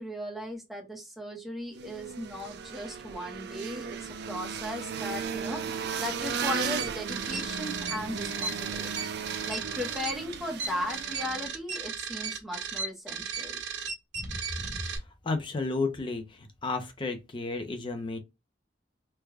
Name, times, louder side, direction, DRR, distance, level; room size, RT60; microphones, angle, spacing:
voice 1, 0.0-4.0 4.3-9.1 9.5-13.6, left 1 dB, ahead, 0.8 m, -37 dB
sound 1, 1.7-11.5, right 6 dB, 65° right, 0.4 m, -36 dB
sound 2, 6.2-15.0, right 6 dB, 80° right, 1.4 m, -35 dB
voice 2, 15.2-18.2, left 3 dB, 30° left, 0.5 m, -32 dB
3.3 x 2.2 x 3.4 m
head